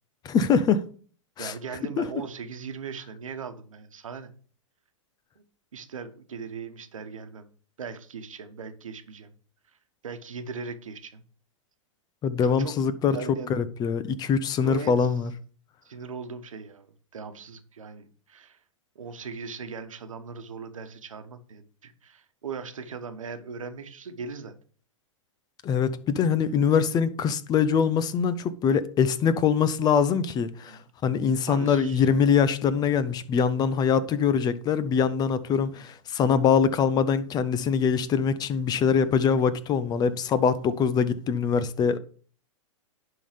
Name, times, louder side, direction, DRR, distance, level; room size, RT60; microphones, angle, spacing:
voice 1, 0.2-0.8 1.4-1.5 2.0-2.1 12.2-13.2 13.5-15.3 25.6-42.0, left 6 dB, 25° left, 0.6 m, -23 dB
voice 2, 1.4-4.3 5.4-5.5 5.7-7.5 7.8-9.3 10.0-11.2 12.4-12.7 13.0-13.5 14.6-15.1 15.8-18.6 18.9-24.5 26.4-26.6 30.7-30.9 31.5-32.2 35.7-35.8, right 5 dB, 85° right, 1.2 m, -39 dB
10.5 x 3.9 x 5.1 m
hypercardioid pair, 120°, 17 cm